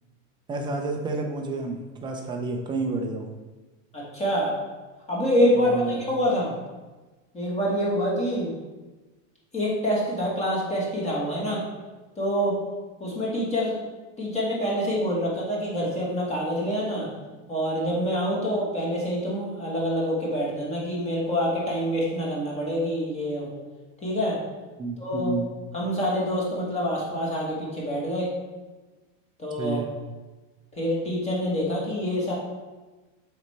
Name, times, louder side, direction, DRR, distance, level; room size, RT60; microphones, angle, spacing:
voice 1, 0.5-3.3 5.5-6.0 24.8-25.5 29.6-29.9, right 3 dB, 10° right, 2 dB, 0.5 m, -30 dB
voice 2, 3.9-4.5 5.1-6.5 7.3-8.5 9.5-11.6 12.2-12.5 13.0-13.8 14.2-17.1 17.5-23.5 24.0-24.4 25.0-25.3 25.7-28.3 29.4-29.8 30.8-32.3, equal, 15° left, -5 dB, 1.3 m, -26 dB
7.1 x 4.2 x 3.2 m, 1.2 s
supercardioid pair, 150°, 39 cm